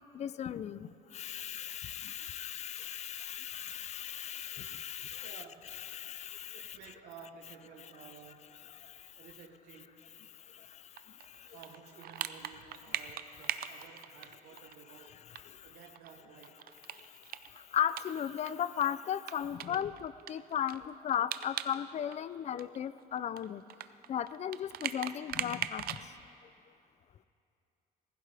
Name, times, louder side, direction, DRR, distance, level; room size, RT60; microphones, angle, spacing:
voice 1, 0.1-5.4 5.9-6.8 8.8-9.1 10.5-10.8 11.1-11.5 15.5-15.7 17.0-17.1 17.5-23.6 24.1-26.0, left 9 dB, 40° left, 16 dB, 0.4 m, -36 dB
voice 2, 5.2-5.8 6.5-8.7 9.2-10.0 11.5-15.3 15.6-16.7, right 6 dB, 85° right, 3 dB, 1.1 m, -54 dB
sound 1, 11.0-14.7 15.0-15.1 15.3-15.4 15.8-18.5 18.8-18.9 19.3-21.8 22.0-26.0, right 11 dB, 60° right, 0.5 m, -40 dB
19.0 x 15.5 x 3.4 m, 2.7 s
cardioid pair, 110°, 17 cm